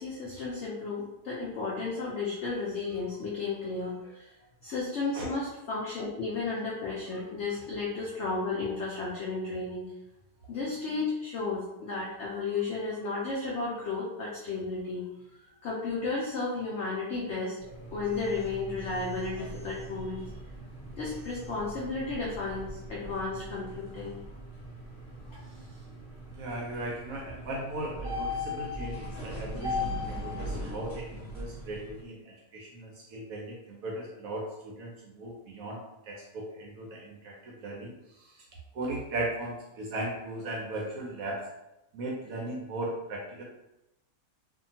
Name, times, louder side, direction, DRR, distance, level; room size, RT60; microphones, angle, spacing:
voice 1, 0.0-4.3 4.6-9.9 10.5-15.0 15.6-20.3 21.0-24.2 25.3-25.4, left 3 dB, 85° left, -4 dB, 0.6 m, -33 dB
sound 1, 17.6-32.0, left 1 dB, 45° left, 0.7 m, -39 dB
voice 2, 25.5-25.8 26.3-38.4 38.7-41.4 41.9-43.4, right 1 dB, 70° right, -1 dB, 0.9 m, -37 dB
2.7 x 2.4 x 2.7 m, 0.89 s
omnidirectional pair, 1.8 m